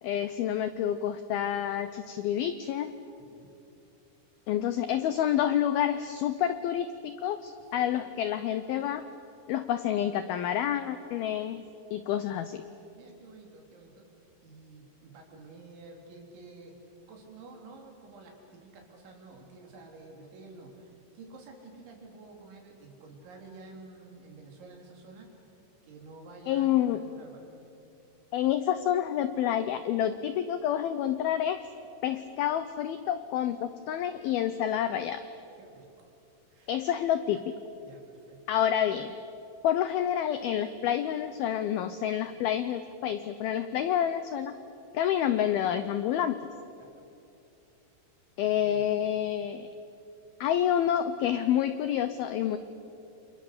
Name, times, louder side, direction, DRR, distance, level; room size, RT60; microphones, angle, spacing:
voice 1, 0.0-2.9 4.5-9.0 9.5-11.6 11.9-12.6 26.5-27.0 28.3-31.6 32.0-35.2 36.7-37.5 38.5-39.2 39.6-44.5 44.9-46.4 48.4-49.7 50.4-52.6, left 10 dB, 85° left, 11 dB, 2.1 m, -28 dB
voice 2, 3.2-3.5 7.9-8.0 13.0-14.1 14.4-16.8 17.1-25.3 25.8-27.4 35.6-36.1 36.5-36.7 37.3-37.4 37.8-38.4 46.8-47.1 48.5-49.0, right 3 dB, 75° right, 1 dB, 5.9 m, -50 dB
29.5 x 28.0 x 6.8 m, 2.7 s
omnidirectional pair, 5.4 m